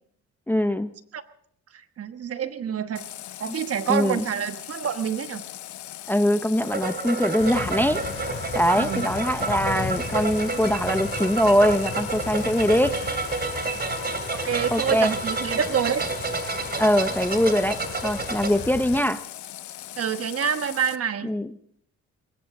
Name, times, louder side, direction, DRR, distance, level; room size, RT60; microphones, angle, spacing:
voice 1, 0.5-0.9 3.9-4.2 6.1-8.0 8.5-13.0 14.7-15.1 16.8-19.2 21.2-21.5, equal, 5° left, 12 dB, 0.7 m, -22 dB
voice 2, 2.0-3.0 3.4-5.4 8.8-9.0 14.3-16.1 20.0-21.3, right 8 dB, 50° right, 10 dB, 1.2 m, -27 dB
Water tap faucet, 3.0-21.0, left 13 dB, 75° left, 0.9 m, -40 dB
sound 1, 6.6-18.5, right 4 dB, 35° right, 2.5 m, -30 dB
sound 2, 7.4-19.0, left 5 dB, 45° left, 2.9 m, -37 dB
21.0 x 18.5 x 3.7 m, 0.66 s
cardioid pair, 90°, 30 cm